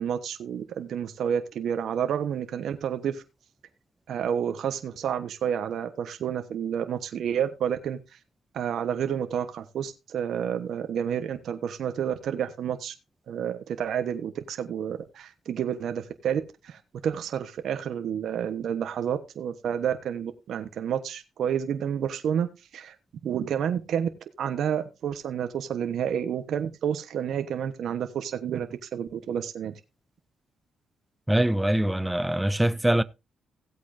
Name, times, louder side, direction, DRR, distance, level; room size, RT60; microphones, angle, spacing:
voice 1, 0.0-3.2 4.1-8.0 8.5-12.9 13.3-23.0 23.2-24.1 24.4-29.8, right 8 dB, 65° right, 1.1 m, -30 dB
voice 2, 31.3-33.0, right 1 dB, 10° right, 0.5 m, -23 dB
16.5 x 8.3 x 2.7 m
cardioid pair, 90°, 0 cm